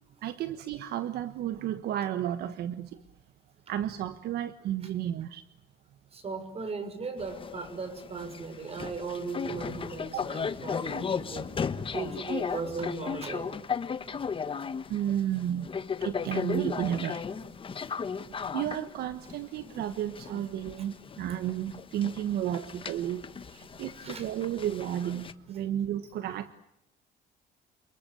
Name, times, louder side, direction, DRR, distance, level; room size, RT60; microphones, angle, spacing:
voice 1, 0.2-3.0 3.7-5.4 10.1-10.2 14.9-15.7 16.0-17.2 18.5-23.2 23.5-26.5, right 11 dB, 70° right, 11 dB, 1.2 m, -32 dB
voice 2, 6.1-11.5 11.9-13.5 18.4-18.5 23.8-24.3, right 4 dB, 35° right, 9 dB, 6.6 m, -37 dB
sound 1, 7.2-25.3, left 6 dB, 30° left, 1.3 m, -36 dB
28.5 x 21.0 x 8.6 m, 0.80 s
cardioid pair, 110°, 17 cm